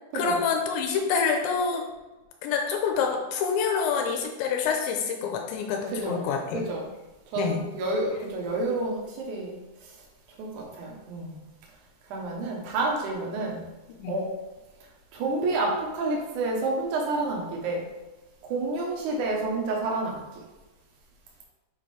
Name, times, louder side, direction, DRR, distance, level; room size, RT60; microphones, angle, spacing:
voice 1, 0.1-1.8 2.4-6.6 7.3-7.6 14.0-14.2, left 6 dB, 85° left, 3 dB, 2.9 m, -27 dB
voice 2, 5.9-6.2 6.5-6.9 7.3-9.6 10.4-11.4 12.1-13.6 14.1-14.3 15.1-17.8 18.4-20.2, right 2 dB, 70° right, -1 dB, 1.9 m, -29 dB
7.5 x 4.4 x 5.1 m, 1.1 s
omnidirectional pair, 5.5 m